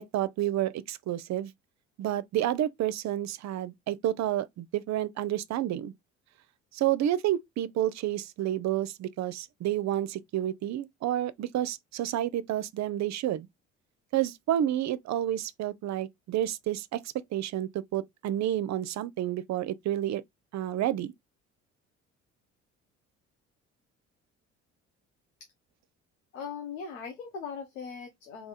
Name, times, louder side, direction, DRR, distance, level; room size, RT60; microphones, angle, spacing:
voice 1, 0.0-1.5 2.0-5.9 6.7-13.5 14.1-20.2 20.5-21.1, right 12 dB, 45° right, 0.5 m, -30 dB
voice 2, 26.3-28.5, left 6 dB, 85° left, 0.8 m, -39 dB
3.6 x 2.9 x 4.0 m
hypercardioid pair, 50°, 38 cm